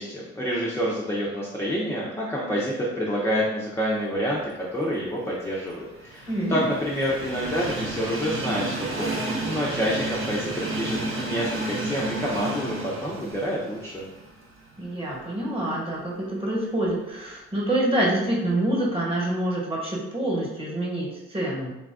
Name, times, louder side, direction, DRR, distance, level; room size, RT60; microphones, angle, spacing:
voice 1, 0.0-4.4 4.7-14.1, equal, 10° left, -5 dB, 0.5 m, -28 dB
Train, 5.1-15.3 15.7-15.8 16.9-17.0, right 2 dB, 40° right, 0.7 m, -32 dB
voice 2, 6.3-6.7 14.8-21.7, right 1 dB, 15° right, -5 dB, 1.2 m, -26 dB
3.2 x 2.2 x 2.4 m, 0.98 s
hypercardioid pair, 45°, 33 cm